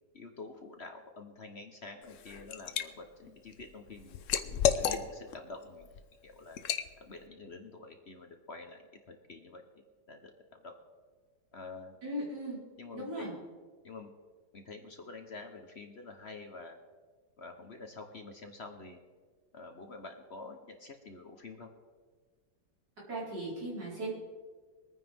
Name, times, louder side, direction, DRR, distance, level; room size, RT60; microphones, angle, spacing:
voice 1, 0.1-4.2 4.8-5.9 6.2-6.6 7.0-9.6 10.1-10.3 10.6-10.7 11.5-12.0 12.8-13.3 13.8-14.1 14.5-16.8 17.4-19.0 19.5-21.7, left 3 dB, 45° left, 5 dB, 0.9 m, -47 dB
Liquid, 2.0-2.8 3.3-5.4 5.8-6.0 6.6-6.9, left 8 dB, 70° left, 0.7 m, -31 dB
voice 2, 12.0-12.6 12.9-13.3 23.1-24.1, right 1 dB, 60° right, -6 dB, 5.3 m, -37 dB
23.5 x 9.5 x 3.6 m, 1.5 s
omnidirectional pair, 2.1 m